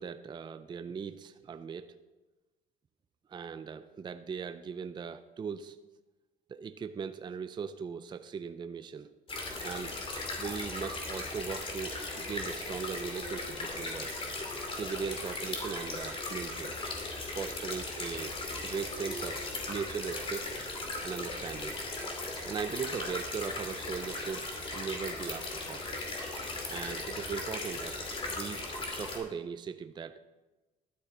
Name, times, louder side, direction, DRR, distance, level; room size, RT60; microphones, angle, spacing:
voice 1, 0.0-1.9 3.3-5.8 6.5-9.1 9.6-10.0 10.4-14.1 14.7-16.8 17.3-18.3 18.6-19.4 19.7-20.5 21.0-21.8 22.5-25.8 26.7-28.6 28.9-30.2, right 6 dB, 25° right, 10 dB, 0.4 m, -39 dB
sound 1, 9.3-29.2, left 2 dB, 35° left, 2.4 m, -38 dB
sound 2, 13.0-15.2 16.0-17.0 19.0-21.0 22.0-22.8 23.5-23.6 25.0-25.1, right 1 dB, 10° left, 1.1 m, -51 dB
12.0 x 9.4 x 3.8 m, 1.2 s
cardioid pair, 110°, 17 cm